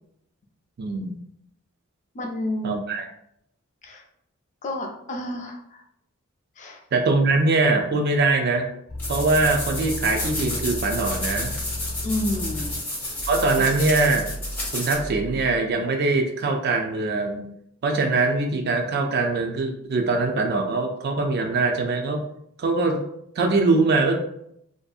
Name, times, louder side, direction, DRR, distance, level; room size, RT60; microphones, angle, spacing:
voice 1, 0.8-1.2 2.6-3.1 6.9-8.7 9.1-11.5 13.3-14.3 14.7-17.4 17.8-22.2 22.6-23.0 23.4-24.2, right 3 dB, 45° right, 4 dB, 0.3 m, -22 dB
voice 2, 2.1-2.8 3.8-4.0 4.6-5.8 6.6-6.8 12.0-12.7 13.4-13.7, left 1 dB, 35° left, 1 dB, 0.4 m, -30 dB
sound 1, 8.9-15.6, left 1 dB, 75° left, 0.8 m, -34 dB
sound 2, 9.0-15.0, left 1 dB, 10° left, 0.9 m, -31 dB
2.6 x 2.5 x 2.3 m, 0.75 s
head